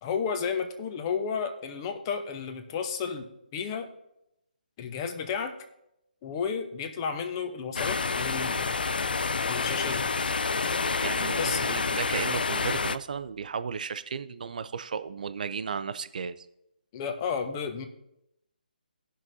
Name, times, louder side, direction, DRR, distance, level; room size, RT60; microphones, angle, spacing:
voice 1, 0.0-3.9 4.8-5.6 6.2-8.9 9.5-10.1 11.4-11.8 16.9-17.9, left 6 dB, 25° left, 7 dB, 1.0 m, -32 dB
sound 1, 7.8-13.0, left 4 dB, 70° left, 0.4 m, -28 dB
voice 2, 11.0-16.5, right 6 dB, 55° right, 13 dB, 0.5 m, -34 dB
18.0 x 6.0 x 2.7 m, 0.84 s
figure-of-eight pair, 145°, 5 cm